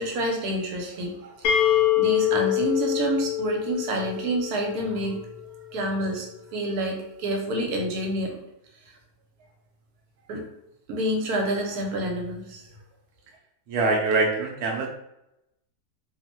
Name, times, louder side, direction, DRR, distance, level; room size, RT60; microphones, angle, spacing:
voice 1, 0.0-5.2 5.7-6.3 6.5-8.4 10.3-10.4 10.9-12.7, right 1 dB, 70° right, 1 dB, 1.1 m, -28 dB
sound 1, 1.4-5.2, left 12 dB, 70° left, 0.8 m, -25 dB
voice 2, 13.7-14.9, right 3 dB, 90° right, 0 dB, 0.5 m, -23 dB
3.1 x 2.0 x 2.9 m, 0.84 s
omnidirectional pair, 1.8 m